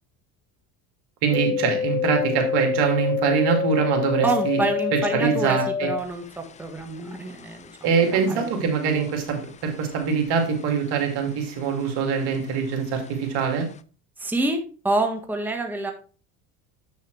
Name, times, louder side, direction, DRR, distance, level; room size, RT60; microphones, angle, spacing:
voice 1, 1.2-4.6 4.9-5.9 7.8-13.7, right 6 dB, 65° right, 3 dB, 2.5 m, -23 dB
sound 1, 1.3-10.7 11.0-11.9 12.2-13.1 13.5-13.6, left 7 dB, 20° left, 0.3 m, -28 dB
voice 2, 4.2-7.8 8.1-8.4 14.2-15.9, right 2 dB, 5° right, 3 dB, 1.4 m, -27 dB
7.8 x 6.7 x 3.2 m, 0.38 s
hypercardioid pair, 80°, 43 cm